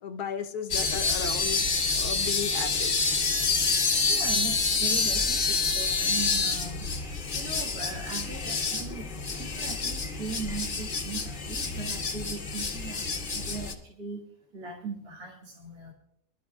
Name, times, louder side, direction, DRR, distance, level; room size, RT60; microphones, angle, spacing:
voice 1, 0.0-1.7 1.9-3.2, left 7 dB, 75° left, 8 dB, 1.4 m, -35 dB
sound 1, 0.7-13.7, left 4 dB, 40° left, 0.9 m, -28 dB
voice 2, 4.1-7.0 7.3-9.1 9.4-13.0 13.3-14.2 14.5-15.9, right 4 dB, 65° right, -3 dB, 2.1 m, -39 dB
22.0 x 12.0 x 2.4 m, 0.76 s
omnidirectional pair, 1.7 m